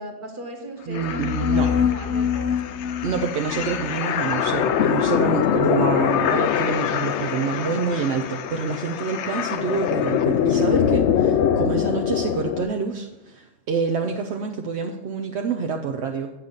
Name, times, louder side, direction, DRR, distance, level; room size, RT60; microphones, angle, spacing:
voice 1, 0.0-2.5 9.3-9.7, right 1 dB, 50° right, 3 dB, 1.5 m, -38 dB
sound 1, 0.9-12.6, left 8 dB, 80° left, 0.9 m, -23 dB
voice 2, 0.9-1.7 3.0-16.3, right 5 dB, 75° right, 4 dB, 0.9 m, -27 dB
8.6 x 7.3 x 3.9 m, 1.0 s
omnidirectional pair, 1.2 m